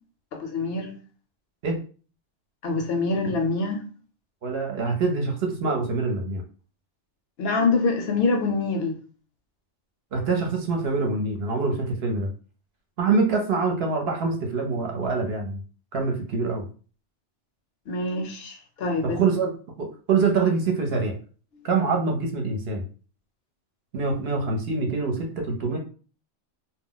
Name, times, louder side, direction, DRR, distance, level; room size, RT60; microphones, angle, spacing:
voice 1, 0.3-1.0 2.6-3.8 7.4-9.0 17.9-19.2, left 3 dB, 65° left, 0.7 m, -25 dB
voice 2, 4.4-6.4 10.1-12.3 13.0-15.6 15.9-16.6 19.0-19.5 19.8-21.1 21.6-22.8 23.9-25.8, right 4 dB, 60° right, 0.9 m, -25 dB
2.2 x 2.0 x 3.7 m
omnidirectional pair, 1.2 m